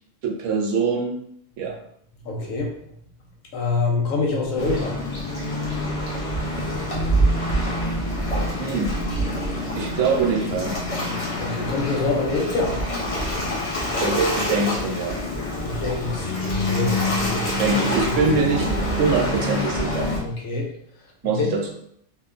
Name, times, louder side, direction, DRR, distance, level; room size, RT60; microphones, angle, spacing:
voice 1, 0.2-1.2 1.6-1.8 8.6-8.9 9.7-10.8 14.0-15.2 17.6-20.1 21.2-21.7, right 4 dB, 75° right, 1 dB, 0.9 m, -23 dB
voice 2, 2.3-2.8 3.5-5.0 11.4-12.8 15.6-18.3 20.2-20.7 21.2-21.6, left 3 dB, 90° left, 0 dB, 1.0 m, -26 dB
Waves surf, 4.6-20.2, equal, 40° left, 0.5 m, -26 dB
2.9 x 2.2 x 2.4 m, 0.71 s
omnidirectional pair, 1.3 m